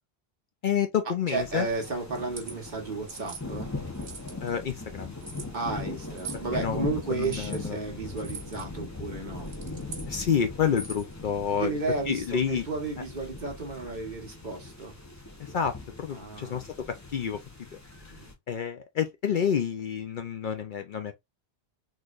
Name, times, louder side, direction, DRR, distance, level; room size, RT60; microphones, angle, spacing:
voice 1, 0.6-1.7 4.4-5.1 6.5-6.8 7.1-7.8 10.1-11.7 12.1-12.7 15.5-16.9 17.1-17.4 18.5-21.2, left 8 dB, 60° left, 0.6 m, -29 dB
sound 1, 1.3-18.3, left 3 dB, 20° left, 0.8 m, -40 dB
voice 2, 1.3-3.7 5.5-9.5 11.6-14.9 16.1-16.7 18.1-18.3, right 3 dB, 45° right, 1.4 m, -33 dB
sound 2, 2.2-2.5 3.1-3.4 3.9-4.5 5.2-5.5 6.2-6.5 7.2-7.6 8.2-8.6 9.4-10.1 10.7-11.1, right 4 dB, 85° right, 1.6 m, -42 dB
4.1 x 3.2 x 2.4 m
omnidirectional pair, 1.1 m